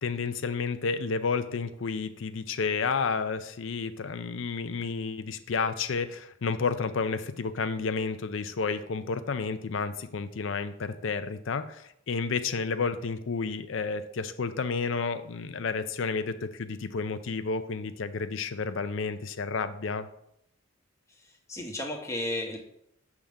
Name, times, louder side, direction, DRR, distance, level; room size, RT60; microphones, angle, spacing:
voice 1, 0.0-20.1, left 4 dB, 65° left, 11 dB, 0.5 m, -31 dB
voice 2, 21.2-22.6, left 1 dB, 15° left, 0 dB, 1.1 m, -34 dB
7.1 x 3.6 x 6.4 m, 0.74 s
head